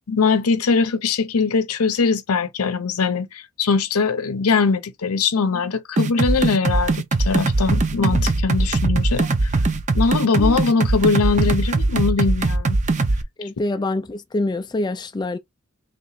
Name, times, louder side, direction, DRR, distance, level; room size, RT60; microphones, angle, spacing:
voice 1, 0.1-9.5 9.9-12.8 13.4-13.5, left 5 dB, 85° left, 0.7 m, -21 dB
sound 1, 6.0-13.2, right 3 dB, 35° right, 0.5 m, -20 dB
voice 2, 13.4-15.4, left 2 dB, 20° left, 0.3 m, -25 dB
3.2 x 2.9 x 4.1 m
head